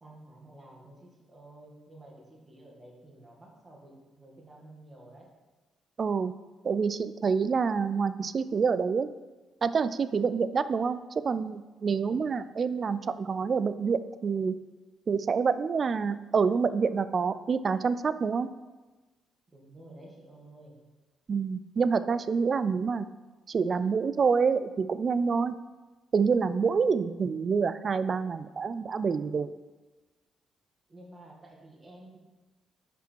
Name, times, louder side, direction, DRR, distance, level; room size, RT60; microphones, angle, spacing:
voice 1, 0.0-5.3 11.9-12.3 19.5-20.8 30.9-32.2, right 1 dB, 25° right, -2 dB, 1.7 m, -51 dB
voice 2, 6.0-6.3 6.6-9.1 9.6-14.5 15.1-18.5 21.3-23.1 23.5-25.6 26.1-29.5, right 5 dB, 45° right, 14 dB, 0.3 m, -27 dB
5.4 x 5.1 x 4.5 m, 1.2 s
cardioid pair, 90°, 0 cm